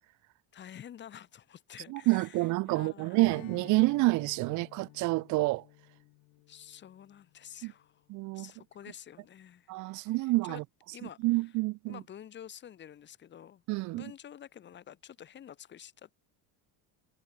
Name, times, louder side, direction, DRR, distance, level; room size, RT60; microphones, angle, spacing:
voice 1, 0.5-3.2 6.5-8.0 8.3-10.6 10.9-11.5 11.9-13.6 13.9-16.1, left 9 dB, 30° left, 5.8 m, -49 dB
voice 2, 1.9-5.6 7.6-7.7 8.1-8.5 9.7-10.6 11.2-12.0 13.7-14.1, right 22 dB, 50° right, 1.0 m, -28 dB
Strum, 3.2-8.0, left 25 dB, 65° left, 4.2 m, -53 dB
cardioid pair, 180°, 38 cm